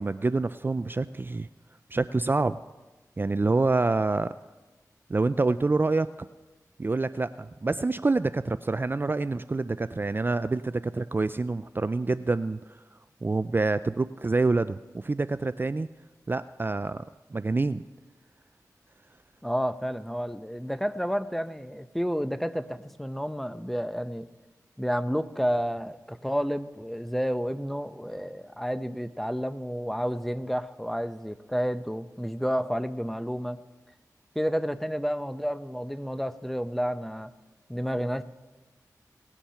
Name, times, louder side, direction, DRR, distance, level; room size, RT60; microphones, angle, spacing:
voice 1, 0.0-1.5 1.9-2.6 3.2-4.3 5.1-6.1 6.8-12.6 13.2-15.9 16.3-17.0 17.3-17.8, right 3 dB, 30° right, 13 dB, 0.3 m, -26 dB
voice 2, 19.4-24.3 24.8-33.6 34.3-37.3 37.7-38.2, equal, 5° left, 13 dB, 0.7 m, -30 dB
18.5 x 7.3 x 5.7 m, 1.1 s
cardioid pair, 40°, 7 cm